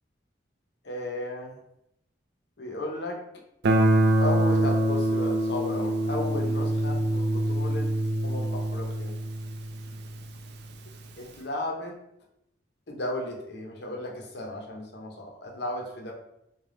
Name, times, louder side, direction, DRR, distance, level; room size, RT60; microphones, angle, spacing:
voice 1, 0.8-1.6 2.6-3.2 4.2-7.9 8.2-9.2 11.2-12.0 12.9-16.1, left 1 dB, 65° left, 1 dB, 0.8 m, -34 dB
Guitar, 3.6-10.4, right 1 dB, 65° right, 0.4 m, -25 dB
3.3 x 2.3 x 3.7 m, 0.79 s
head